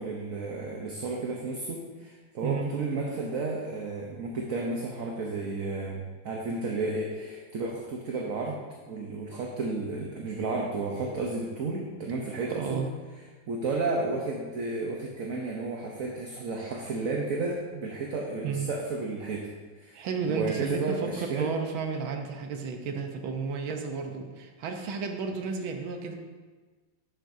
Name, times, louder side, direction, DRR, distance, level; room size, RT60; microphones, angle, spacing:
voice 1, 0.0-12.9 13.5-19.5 19.8-21.6, right 3 dB, 55° right, -1 dB, 1.1 m, -32 dB
voice 2, 2.4-2.7 12.6-12.9 18.4-18.7 19.9-26.2, right 5 dB, 85° right, 4 dB, 1.7 m, -32 dB
11.0 x 8.9 x 2.7 m, 1.4 s
omnidirectional pair, 2.1 m